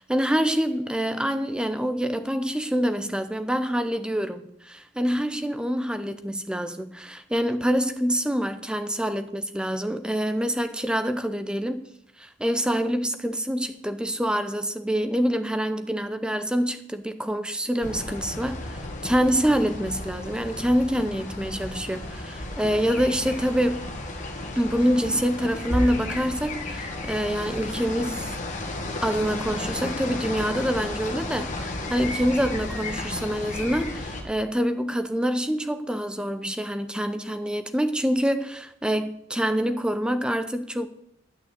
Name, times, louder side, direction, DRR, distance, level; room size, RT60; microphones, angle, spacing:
voice 1, 0.0-11.9 12.2-23.8 24.6-28.3 29.0-40.9, equal, 5° right, 0.7 m, -26 dB
sound 1, 17.8-34.2, left 2 dB, 40° left, 1.9 m, -33 dB
11.0 x 6.3 x 8.3 m
head